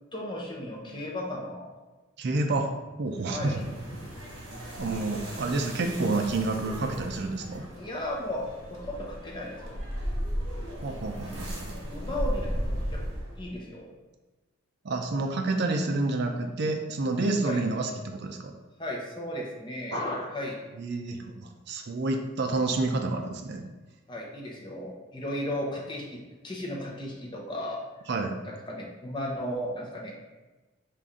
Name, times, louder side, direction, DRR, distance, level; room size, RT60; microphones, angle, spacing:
voice 1, 0.1-1.7 3.3-3.6 7.7-9.8 11.3-11.4 11.9-13.1 13.4-13.9 17.4-17.6 18.8-20.6 24.1-27.8 28.5-30.1, left 1 dB, 20° left, -2 dB, 0.7 m, -35 dB
voice 2, 2.2-3.6 4.8-7.6 10.8-11.9 14.8-18.5 19.9-20.0 20.8-23.6 28.1-28.3, right 2 dB, 55° right, 4 dB, 0.4 m, -29 dB
sound 1, 3.1-13.5, equal, 70° right, 1.2 m, -36 dB
5.5 x 2.5 x 3.6 m, 1.2 s
head